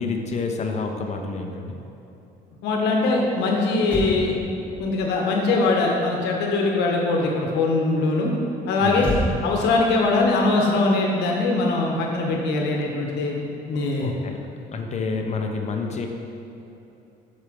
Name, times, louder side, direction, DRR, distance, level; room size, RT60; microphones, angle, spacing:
voice 1, 0.0-1.8 8.8-9.1 14.0-14.4 14.7-16.1, left 4 dB, 40° left, 3 dB, 0.8 m, -28 dB
voice 2, 2.6-4.3 4.8-8.3 8.7-9.1 9.4-14.1, left 3 dB, 85° left, 0 dB, 1.3 m, -22 dB
Motor vehicle (road), 3.8-7.3 9.0-11.6 11.8-12.1, left 1 dB, 10° left, 1.4 m, -33 dB
8.0 x 6.5 x 3.7 m, 3.0 s
cardioid pair, 110°, 17 cm